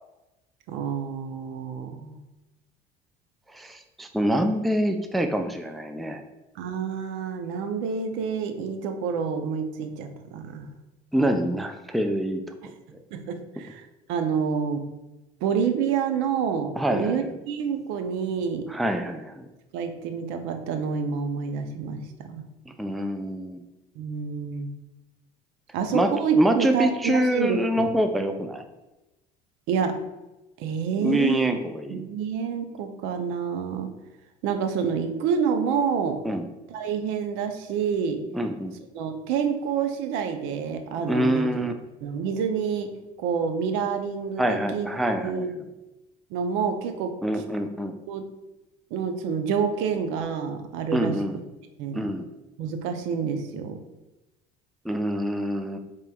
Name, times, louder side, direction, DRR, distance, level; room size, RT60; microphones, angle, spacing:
voice 1, 0.7-2.2 6.6-10.7 13.1-13.8 14.1-14.8 15.4-18.7 19.7-22.4 24.0-24.7 25.7-27.9 29.7-30.0 30.6-31.6 31.9-33.9 34.4-36.2 36.7-38.2 38.9-41.7 42.0-42.9 43.2-45.5 46.3-47.1 48.1-48.3 48.9-51.2 51.8-52.0 52.6-53.8, right 6 dB, 75° right, 7 dB, 0.5 m, -28 dB
voice 2, 3.5-6.2 11.1-12.4 16.8-17.2 18.7-19.5 22.7-23.6 25.9-28.6 31.0-32.0 36.2-36.5 38.3-38.7 41.0-41.7 44.4-45.4 47.2-47.9 50.9-51.4 52.0-52.3 54.8-55.8, right 1 dB, ahead, 6 dB, 0.3 m, -25 dB
4.7 x 3.0 x 2.3 m, 1.0 s
supercardioid pair, 80°, 20 cm